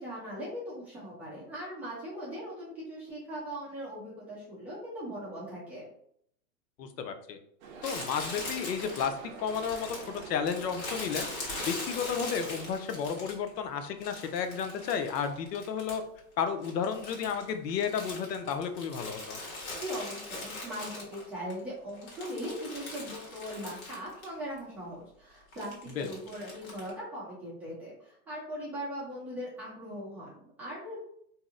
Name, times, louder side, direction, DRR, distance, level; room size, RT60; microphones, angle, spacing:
voice 1, 0.0-5.8 19.7-31.0, equal, 5° right, -10 dB, 0.6 m, -40 dB
voice 2, 6.8-7.4 7.8-11.2 11.7-16.0 16.4-19.4 26.0-26.1, left 7 dB, 85° left, 7 dB, 0.7 m, -32 dB
sound 1, 7.6-12.8, right 5 dB, 55° right, 0.6 m, -47 dB
Crumpling crinkling, 7.8-13.6 14.0-16.2 16.5-21.5 21.9-24.3 24.6-24.7 25.5-26.9, left 2 dB, 55° left, 1.5 m, -41 dB
2.8 x 2.0 x 3.6 m, 0.68 s
hypercardioid pair, 155°, 48 cm